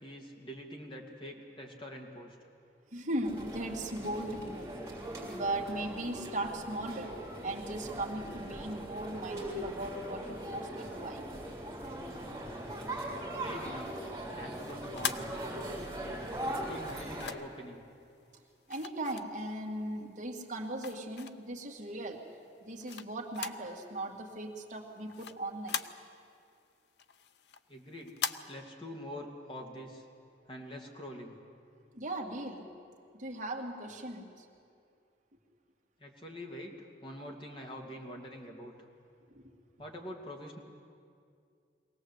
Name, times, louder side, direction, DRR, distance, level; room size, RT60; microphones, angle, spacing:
voice 1, 0.0-2.5 13.4-13.9 14.3-15.7 16.5-17.8 27.7-28.2 28.5-30.0 30.5-31.3 36.0-36.7 37.0-38.7 39.8-40.6, equal, 30° left, 1 dB, 2.4 m, -45 dB
voice 2, 2.9-4.7 5.2-11.3 18.7-22.2 22.6-25.8 31.9-32.7 33.1-34.5 39.3-39.5, right 1 dB, 45° right, 0 dB, 2.3 m, -38 dB
sound 1, 3.2-17.3, right 1 dB, 15° right, 4.9 m, -40 dB
sound 2, 14.5-16.0 16.8-17.7 18.7-19.8 20.2-21.6 22.1-23.7 24.0-24.1 24.5-26.4 26.8-28.4, left 8 dB, 65° left, 0.7 m, -40 dB
23.0 x 18.0 x 8.1 m, 2.4 s
head